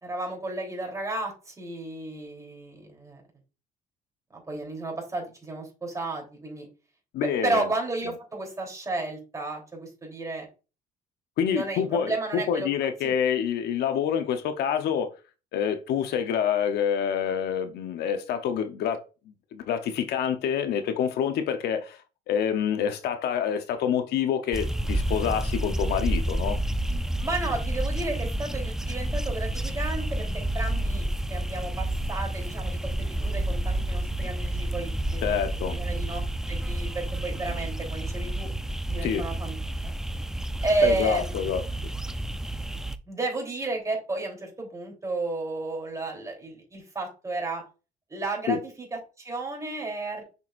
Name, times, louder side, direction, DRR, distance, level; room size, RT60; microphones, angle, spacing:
voice 1, 0.0-3.2 4.3-6.7 7.4-10.5 11.5-12.7 13.0-13.2 27.2-35.2 35.7-36.2 36.5-38.5 38.9-39.6 39.8-39.9 40.6-41.9 42.8-47.6 48.1-50.2, right 2 dB, 20° right, 3.4 m, -32 dB
voice 2, 7.1-7.7 11.4-15.1 15.5-19.0 19.5-22.0 22.3-26.6 35.2-35.8 39.0-39.2 40.8-41.6 48.5-48.6, left 8 dB, 75° left, 0.9 m, -27 dB
sound 1, 24.5-43.0, right 1 dB, 5° right, 0.5 m, -30 dB
6.8 x 6.1 x 2.5 m
cardioid pair, 110°, 17 cm